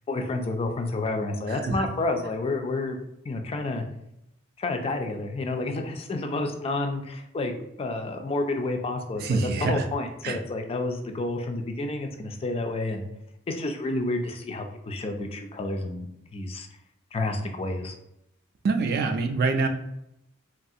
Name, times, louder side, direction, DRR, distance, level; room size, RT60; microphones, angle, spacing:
voice 1, 0.1-3.0 3.2-3.8 4.6-13.1 13.5-16.7 17.1-17.9, left 2 dB, 25° left, 4 dB, 0.3 m, -30 dB
voice 2, 1.5-1.9 9.2-9.9 10.2-10.4 18.6-19.7, right 3 dB, 45° right, 6 dB, 0.4 m, -25 dB
3.2 x 2.4 x 2.6 m, 0.80 s
head